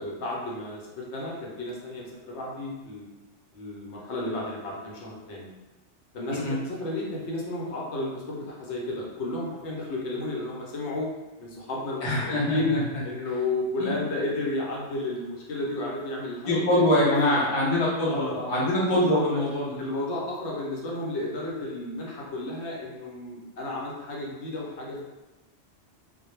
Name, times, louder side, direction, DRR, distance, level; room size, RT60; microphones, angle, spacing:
voice 1, 0.0-3.1 3.5-5.5 6.1-11.1 11.4-12.7 13.0-17.5 18.0-18.4 19.0-19.4 19.8-25.1, left 2 dB, 75° left, -3 dB, 0.9 m, -32 dB
voice 2, 12.0-13.0 13.8-13.9 16.4-19.8, left 1 dB, 30° left, -6 dB, 0.5 m, -24 dB
2.1 x 2.1 x 3.0 m, 1.1 s
omnidirectional pair, 1.2 m